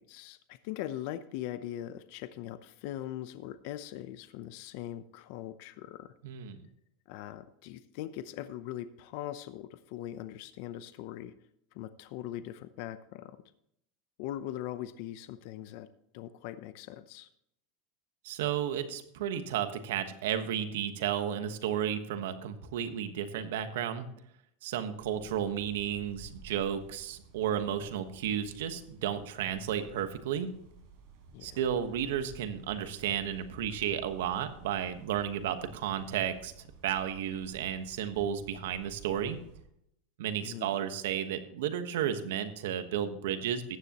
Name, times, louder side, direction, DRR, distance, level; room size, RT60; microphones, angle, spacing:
voice 1, 0.0-6.1 7.1-11.3 11.7-13.4 14.2-15.9 16.1-17.3 31.3-31.6 40.4-40.8, left 12 dB, 55° left, 12 dB, 0.7 m, -41 dB
voice 2, 6.2-6.6 18.2-24.1 24.6-30.5 31.4-36.5 36.8-39.4 40.2-43.6, right 9 dB, 80° right, 9 dB, 1.3 m, -33 dB
sound 1, 25.0-39.6, right 4 dB, 50° right, 4.4 m, -54 dB
14.5 x 9.8 x 3.0 m, 0.74 s
supercardioid pair, 150°, 0 cm